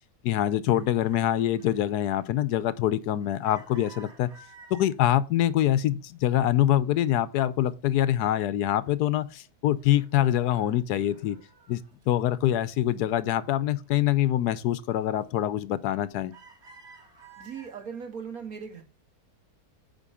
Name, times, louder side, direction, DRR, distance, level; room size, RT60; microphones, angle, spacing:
voice 1, 0.2-4.3 4.7-11.4 11.7-16.3, left 12 dB, 90° left, 1.2 m, -25 dB
sound 1, 0.7-5.0 5.5-6.0 6.3-7.7 8.1-8.2 8.5-9.5 9.8-12.5 12.9-14.0 14.5-14.7 15.1-15.5 15.9-18.1, right 3 dB, 45° right, 2.6 m, -54 dB
voice 2, 17.4-18.8, right 6 dB, 65° right, 2.4 m, -38 dB
9.0 x 4.5 x 4.8 m
omnidirectional pair, 1.7 m